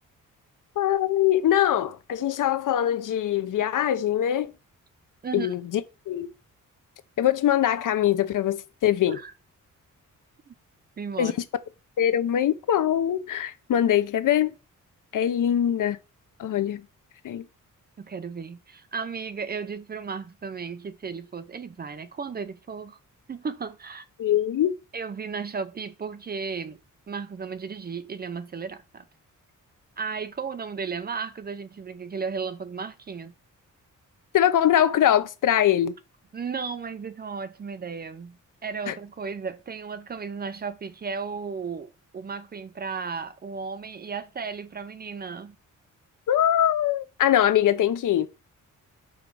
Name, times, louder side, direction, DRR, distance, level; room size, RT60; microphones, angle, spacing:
voice 1, 0.8-4.5 5.3-6.3 7.2-9.2 11.2-11.3 12.0-14.5 15.1-16.0 16.4-16.8 17.2-17.4 24.2-24.7 34.3-35.9 38.9-39.0 46.3-48.3, left 11 dB, 75° left, 0.8 m, -22 dB
voice 2, 5.2-5.5 9.1-9.3 10.5-10.6 11.0-11.3 18.0-23.0 23.3-24.1 24.9-26.8 27.1-29.0 30.0-33.3 36.3-38.4 38.6-45.6, right 5 dB, 30° right, 0.6 m, -34 dB
5.1 x 5.0 x 6.1 m
wide cardioid pair, 165°, 32 cm